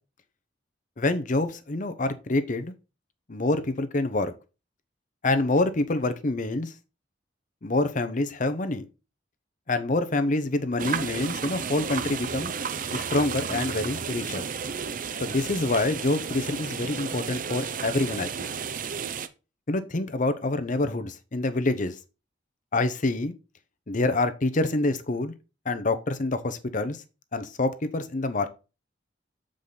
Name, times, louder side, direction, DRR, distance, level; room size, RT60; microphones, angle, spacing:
voice 1, 1.0-2.7 3.3-4.3 5.2-6.7 7.6-8.9 9.7-12.5 12.9-14.5 15.2-18.5 19.7-21.9 22.7-23.3 23.9-25.3 25.7-27.0 27.3-28.5, left 2 dB, 45° left, 0.8 m, -26 dB
sound 1, 10.8-19.3, right 6 dB, 50° right, 0.6 m, -33 dB
7.3 x 5.0 x 4.0 m
head